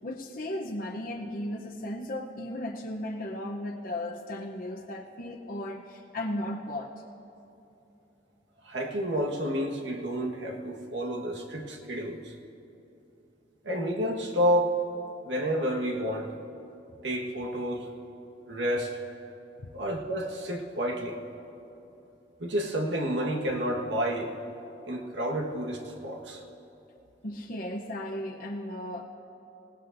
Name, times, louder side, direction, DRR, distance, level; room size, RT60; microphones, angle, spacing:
voice 1, 0.0-6.9 19.6-19.7 27.2-29.0, left 1 dB, 50° left, 1 dB, 0.8 m, -35 dB
voice 2, 8.6-12.3 13.6-14.8 15.2-16.3 17.0-17.9 18.5-19.0 19.7-21.2 22.4-24.3 24.9-26.4, equal, 80° right, 1 dB, 1.5 m, -30 dB
26.5 x 17.5 x 2.6 m, 2.9 s
head